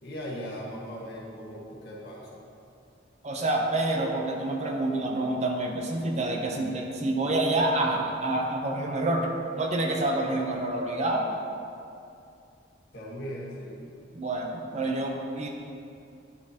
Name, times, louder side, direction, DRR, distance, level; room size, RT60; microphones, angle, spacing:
voice 1, 0.0-2.4 12.9-13.9, equal, 60° left, -4 dB, 1.5 m, -38 dB
voice 2, 3.2-9.3 9.6-11.2 14.1-15.5, right 2 dB, 40° right, 1 dB, 0.7 m, -27 dB
9.6 x 6.4 x 2.9 m, 2.6 s
head